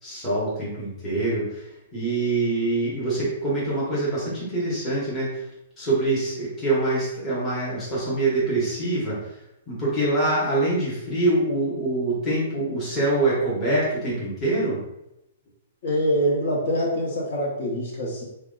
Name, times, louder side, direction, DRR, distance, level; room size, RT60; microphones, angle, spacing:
voice 1, 0.0-5.5 5.8-9.2 9.7-14.8, right 2 dB, 10° left, -9 dB, 1.1 m, -25 dB
voice 2, 15.8-18.2, equal, 45° left, -4 dB, 1.1 m, -24 dB
4.1 x 2.2 x 3.8 m, 0.86 s
hypercardioid pair, 175°, 0 cm